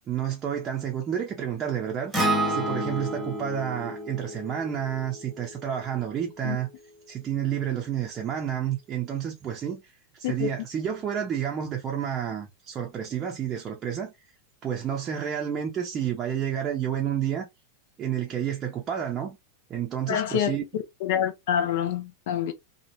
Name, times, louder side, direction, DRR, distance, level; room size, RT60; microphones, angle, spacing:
voice 1, 0.1-2.1 2.5-6.7 7.1-9.8 10.1-14.1 14.6-17.5 18.0-19.4 19.7-20.6, right 9 dB, 25° right, 0.7 m, -30 dB
Acoustic guitar, 2.1-6.4, right 1 dB, 5° right, 1.1 m, -30 dB
voice 2, 20.1-22.5, left 9 dB, 55° left, 0.6 m, -27 dB
2.9 x 2.4 x 2.8 m
figure-of-eight pair, 90°, 0 cm